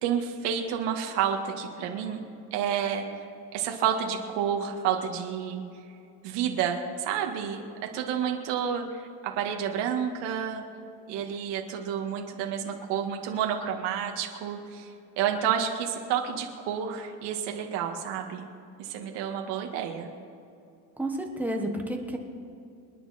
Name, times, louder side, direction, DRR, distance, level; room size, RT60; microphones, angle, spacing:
voice 1, 0.0-2.2 2.5-3.0 3.5-5.6 6.2-10.6 11.1-14.9 15.2-18.5 18.8-20.1, right 8 dB, 80° right, 3 dB, 1.9 m, -30 dB
voice 2, 21.0-22.2, right 1 dB, 5° right, 2 dB, 1.3 m, -30 dB
28.0 x 9.9 x 4.3 m, 2.6 s
cardioid pair, 170°, 41 cm